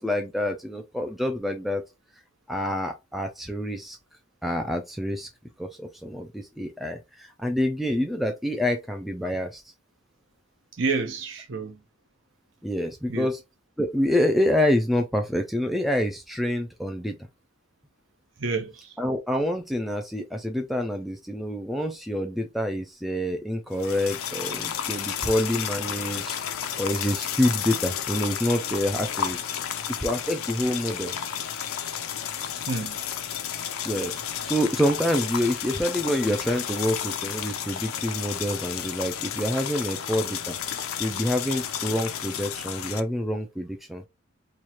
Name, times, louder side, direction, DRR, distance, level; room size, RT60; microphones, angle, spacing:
voice 1, 0.0-1.8 2.5-4.0 4.4-5.3 5.6-9.6 12.6-13.4 13.8-17.2 19.0-26.4 26.8-29.5 30.0-31.1 33.8-34.2 34.4-40.6 41.0-44.0, left 1 dB, ahead, 0.3 m, -27 dB
voice 2, 10.7-11.8 13.1-13.3 18.4-19.0 25.1-25.3 32.7-33.1, right 4 dB, 60° right, 0.8 m, -30 dB
sound 1, 23.7-43.0, left 9 dB, 75° left, 0.5 m, -32 dB
3.1 x 2.4 x 4.2 m
head